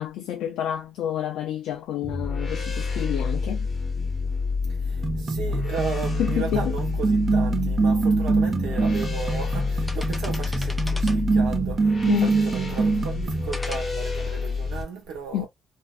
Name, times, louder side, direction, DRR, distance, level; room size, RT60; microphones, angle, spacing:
voice 1, 0.0-3.7 6.2-6.7 12.1-12.3 15.3-15.5, left 10 dB, 85° left, 0.3 m, -28 dB
sound 1, 2.0-14.8, left 4 dB, 30° left, 1.0 m, -28 dB
voice 2, 4.6-15.5, right 5 dB, 90° right, 1.0 m, -35 dB
sound 2, 5.0-13.5, right 4 dB, 35° right, 0.5 m, -25 dB
sound 3, 8.2-8.3 9.0-9.3 9.7-11.4 12.1-12.9 13.5-13.8, left 1 dB, 5° left, 0.6 m, -39 dB
2.5 x 2.1 x 2.3 m
cardioid pair, 90°, 0 cm